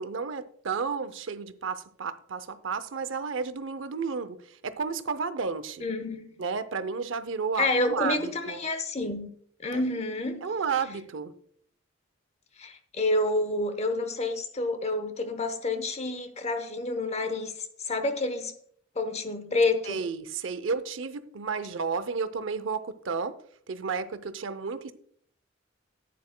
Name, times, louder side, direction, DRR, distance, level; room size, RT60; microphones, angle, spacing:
voice 1, 0.0-5.8 6.4-8.6 9.7-9.8 10.4-11.3 19.9-23.4 23.7-24.9, right 5 dB, 75° right, 0.6 m, -32 dB
voice 2, 5.8-6.3 7.6-9.3 9.6-10.5 12.6-17.5 17.8-18.5 19.0-20.0, left 2 dB, 35° left, 0.9 m, -28 dB
11.5 x 9.3 x 2.2 m
head